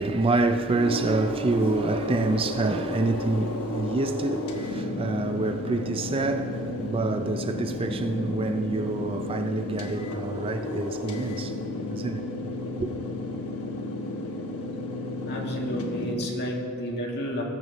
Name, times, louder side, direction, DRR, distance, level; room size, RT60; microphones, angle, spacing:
voice 1, 0.0-11.5 11.9-12.2 12.8-12.9, right 3 dB, 25° right, 0.4 m, -27 dB
sound 1, 0.8-16.1, left 1 dB, 70° left, 1.2 m, -32 dB
voice 2, 15.2-17.4, equal, 50° left, 1.8 m, -31 dB
20.0 x 6.8 x 4.0 m
head